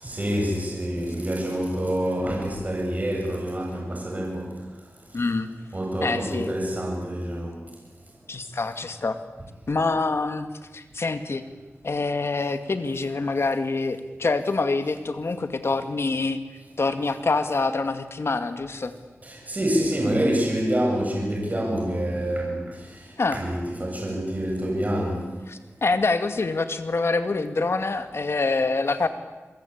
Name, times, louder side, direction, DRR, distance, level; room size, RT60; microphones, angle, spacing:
voice 1, 0.0-4.5 5.7-7.6 19.2-22.6 23.3-25.2, equal, 35° right, -1 dB, 7.9 m, -26 dB
voice 2, 5.1-5.5 6.0-6.5 8.3-9.2 9.7-11.4 11.8-16.4 16.8-18.9 23.2-23.4 25.5-29.1, left 3 dB, 65° left, 9 dB, 2.3 m, -26 dB
27.5 x 23.5 x 8.7 m, 1.2 s
wide cardioid pair, 80°, 5 cm